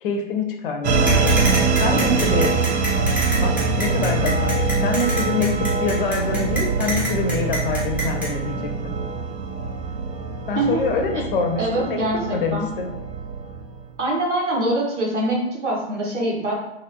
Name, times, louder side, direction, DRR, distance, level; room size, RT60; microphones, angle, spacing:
voice 1, 0.0-2.5 3.4-4.5 4.8-8.6 8.8-9.0 10.5-12.0 12.3-12.9, left 4 dB, 50° left, 4 dB, 0.6 m, -25 dB
sound 1, 0.8-13.9, right 4 dB, 65° right, 0.5 m, -23 dB
sound 2, 1.1-8.3, right 1 dB, 5° right, 0.7 m, -27 dB
voice 2, 11.6-12.7 14.0-16.5, right 1 dB, 80° right, -2 dB, 1.2 m, -24 dB
2.9 x 2.7 x 2.7 m, 0.92 s
figure-of-eight pair, 115°, 35 cm